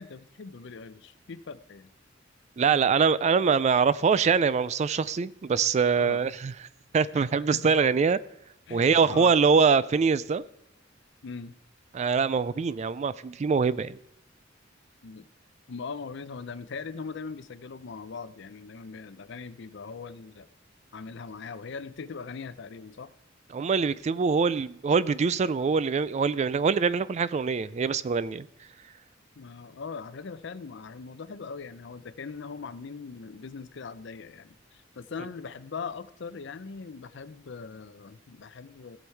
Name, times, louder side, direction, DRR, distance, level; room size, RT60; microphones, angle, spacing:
voice 1, 0.0-1.9 2.7-2.9 6.0-6.2 7.1-7.2 7.5-7.9 8.7-9.3 11.2-11.5 15.0-15.3 15.7-20.5 20.9-23.1 29.4-39.0, left 5 dB, 65° left, 14 dB, 0.5 m, -40 dB
voice 2, 2.6-6.5 6.9-8.2 8.7-10.4 11.9-14.0 23.5-28.5, right 5 dB, 35° right, 17 dB, 0.3 m, -24 dB
16.0 x 7.2 x 4.6 m, 0.81 s
head